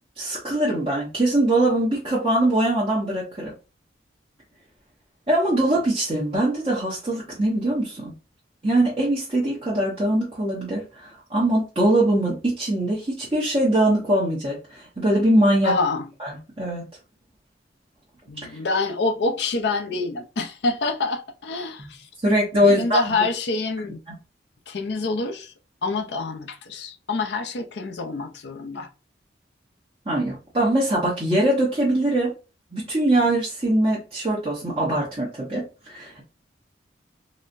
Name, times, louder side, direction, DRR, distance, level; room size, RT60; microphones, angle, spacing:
voice 1, 0.2-3.5 5.3-8.1 8.6-15.7 16.2-16.8 18.4-18.5 22.2-23.0 24.1-24.2 30.1-32.3 32.7-36.2, right 1 dB, 30° right, 0.9 m, -22 dB
voice 2, 15.6-16.1 18.3-22.1 22.6-24.0 24.7-25.5 25.8-28.9, left 3 dB, 70° left, 0.5 m, -26 dB
4.0 x 2.1 x 2.5 m
head